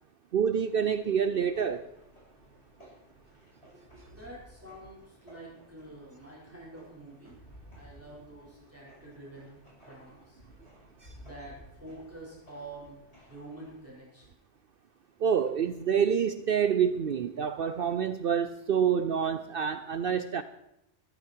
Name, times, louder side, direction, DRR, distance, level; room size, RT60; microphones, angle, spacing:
voice 1, 0.3-1.9 11.0-11.1 15.2-20.4, right 7 dB, 55° right, 0.8 m, -27 dB
sound 1, 0.6-13.9, equal, 65° left, 6.5 m, -56 dB
voice 2, 3.7-7.3 7.7-10.4 11.2-13.0 13.3-14.4, right 2 dB, 10° right, 5.0 m, -47 dB
14.5 x 14.0 x 4.6 m
omnidirectional pair, 1.2 m